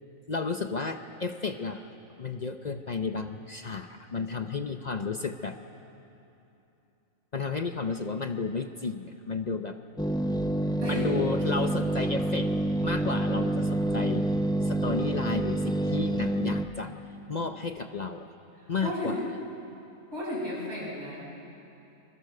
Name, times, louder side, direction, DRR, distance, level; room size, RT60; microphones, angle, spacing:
voice 1, 0.3-1.9 2.2-5.6 7.3-9.8 10.9-12.5 12.8-14.3 14.6-16.9 17.3-18.3 18.7-19.2, left 4 dB, 40° left, 7 dB, 0.7 m, -32 dB
sound 1, 10.0-16.7, right 1 dB, 5° left, 0.4 m, -27 dB
voice 2, 18.8-19.2 20.1-21.3, left 1 dB, 50° right, -5 dB, 6.6 m, -33 dB
26.0 x 22.0 x 6.6 m, 2.9 s
omnidirectional pair, 1.4 m